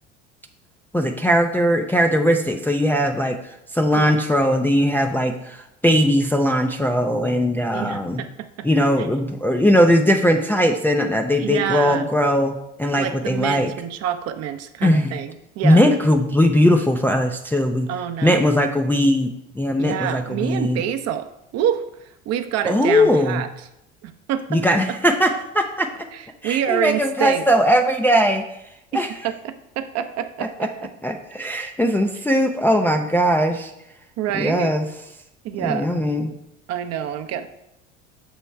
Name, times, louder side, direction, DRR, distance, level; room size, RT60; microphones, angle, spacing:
voice 1, 0.9-8.2 8.6-13.7 14.8-15.2 15.6-17.9 18.2-20.8 22.6-23.4 24.5-25.9 26.4-28.5 28.9-29.1 30.4-30.5 31.0-33.7 34.3-34.9 35.6-36.3, equal, 5° left, 2 dB, 0.4 m, -19 dB
voice 2, 7.7-8.7 9.0-9.1 11.4-12.1 13.0-15.9 17.9-18.5 19.8-21.3 21.5-23.5 24.0-24.6 24.9-25.0 26.1-27.4 28.9-30.9 34.2-34.7 35.4-35.9 36.7-37.5, right 10 dB, 45° right, 8 dB, 0.6 m, -27 dB
7.1 x 3.0 x 4.5 m, 0.82 s
hypercardioid pair, 70°, 35 cm